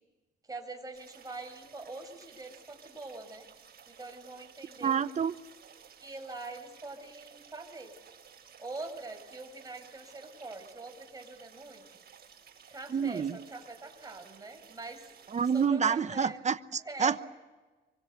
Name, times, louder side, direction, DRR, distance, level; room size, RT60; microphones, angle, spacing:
voice 1, 0.5-3.5 3.9-5.0 6.0-7.9 8.6-11.8 12.7-15.1 15.5-16.4 16.8-17.2, right 3 dB, 20° right, 7.2 m, -43 dB
sound 1, 0.9-15.7, right 7 dB, 50° right, 7.6 m, -56 dB
voice 2, 4.8-5.3 12.9-13.4 15.3-17.2, right 6 dB, 35° right, 1.0 m, -28 dB
25.0 x 24.5 x 8.2 m
cardioid pair, 90°, 20 cm